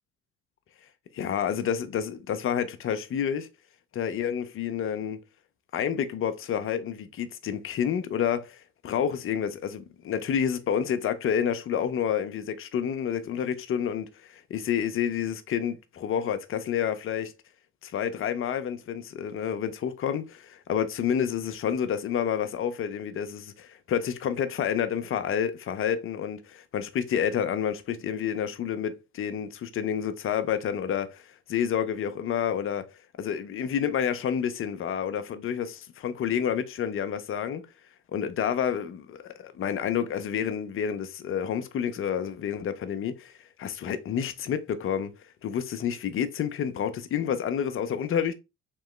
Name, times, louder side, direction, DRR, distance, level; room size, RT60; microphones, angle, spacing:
voice 1, 1.1-3.5 3.9-5.2 5.7-17.3 17.8-31.2 31.5-32.9 33.2-37.6 38.1-43.3 43.6-45.1 45.4-48.3, left 8 dB, 30° left, 0.6 m, -29 dB
3.6 x 3.0 x 3.3 m
figure-of-eight pair, 50°, 42 cm